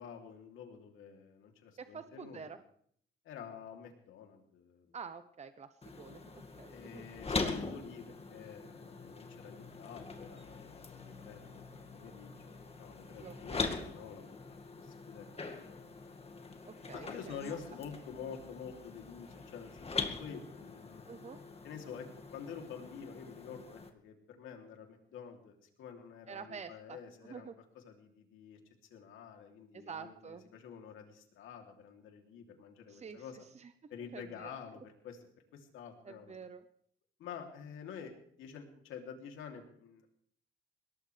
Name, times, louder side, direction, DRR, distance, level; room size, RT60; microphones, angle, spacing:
voice 1, 0.0-2.5 3.2-5.0 6.7-15.9 16.9-19.7 20.0-21.0 21.6-22.1 22.3-27.5 27.8-28.6 28.9-33.4 33.9-35.2 35.5-36.3 37.2-38.1 38.4-40.1, left 7 dB, 85° left, 3 dB, 3.1 m, -49 dB
voice 2, 1.8-2.6 4.9-7.0 13.2-13.7 16.7-17.4 21.1-21.4 26.3-27.5 29.7-30.5 32.9-33.3 33.5-33.7 34.1-34.5 36.0-36.6, right 6 dB, 35° right, 10 dB, 0.9 m, -48 dB
sound 1, 5.8-23.9, left 4 dB, 30° left, 2.1 m, -43 dB
22.0 x 18.0 x 3.4 m, 0.65 s
cardioid pair, 90°, 20 cm